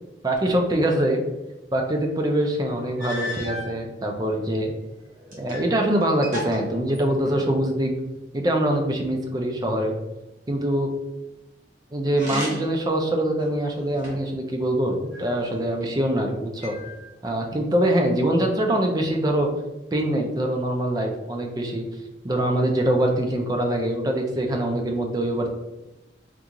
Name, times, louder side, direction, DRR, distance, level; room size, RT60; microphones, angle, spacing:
voice 1, 0.2-1.2 1.7-4.7 5.4-7.9 8.3-9.9 10.5-10.9 11.9-16.8 17.2-19.5 19.9-21.8 22.2-25.5, right 1 dB, 20° right, 2 dB, 0.4 m, -24 dB
sound 1, 2.4-2.5 3.0-3.7 4.5-5.7 6.0-7.5 12.1-12.8 13.4-14.4 15.1-15.9 16.6-17.4, left 1 dB, 45° right, 0.9 m, -35 dB
3.6 x 2.4 x 2.9 m, 0.98 s
head